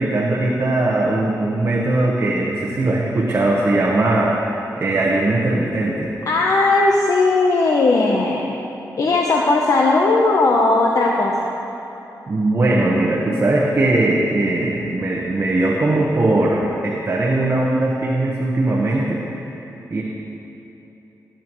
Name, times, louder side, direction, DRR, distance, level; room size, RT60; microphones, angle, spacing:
voice 1, 0.0-6.1 12.3-19.2 19.5-19.6 19.9-20.0, right 2 dB, 35° right, -4 dB, 1.1 m, -19 dB
voice 2, 6.3-8.5 9.0-11.5, left 3 dB, 55° left, -1 dB, 0.8 m, -17 dB
19.0 x 8.9 x 3.1 m, 3.0 s
wide cardioid pair, 115°, 7 cm